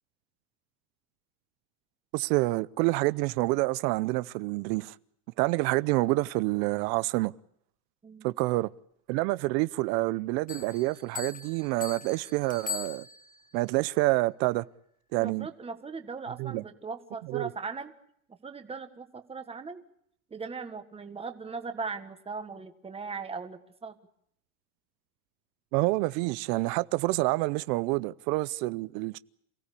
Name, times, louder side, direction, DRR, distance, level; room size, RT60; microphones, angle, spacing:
voice 1, 2.1-4.9 5.4-7.3 8.2-8.7 9.1-13.0 13.5-14.6 15.1-15.5 16.4-16.6 17.3-17.5 25.7-29.2, right 21 dB, 80° right, 0.9 m, -27 dB
Bell, 10.5-13.6, left 6 dB, 15° left, 1.6 m, -40 dB
voice 2, 15.2-17.9 18.3-19.8 20.3-23.9, right 4 dB, 10° right, 1.6 m, -39 dB
28.0 x 17.0 x 8.4 m
cardioid pair, 170°, 50 cm